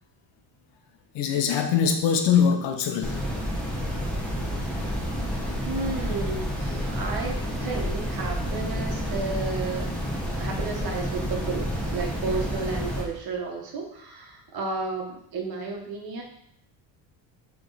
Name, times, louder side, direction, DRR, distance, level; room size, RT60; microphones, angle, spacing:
voice 1, 1.1-3.2 4.7-4.8, left 7 dB, 65° left, 4 dB, 1.1 m, -23 dB
sound 1, 3.0-13.0, equal, ahead, 1.4 m, -29 dB
voice 2, 5.7-16.2, right 4 dB, 50° right, 1 dB, 1.6 m, -33 dB
7.8 x 3.7 x 4.2 m, 0.72 s
cardioid pair, 125°, 46 cm